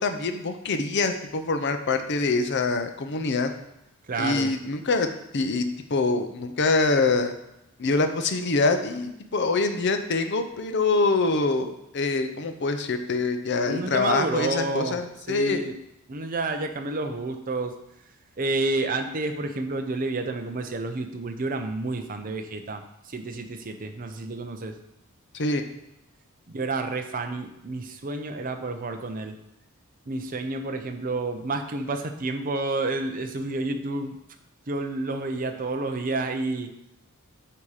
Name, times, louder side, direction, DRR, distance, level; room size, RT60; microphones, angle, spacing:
voice 1, 0.0-3.5 4.2-5.1 5.3-7.3 7.8-15.6 25.3-25.6, left 3 dB, 50° left, 7 dB, 0.6 m, -25 dB
voice 2, 4.1-4.5 13.6-15.0 15.3-15.8 16.1-17.7 18.4-24.7 26.5-29.4 30.1-34.2 34.7-36.7, right 2 dB, 40° right, 6 dB, 0.6 m, -30 dB
8.5 x 2.9 x 4.8 m, 0.84 s
head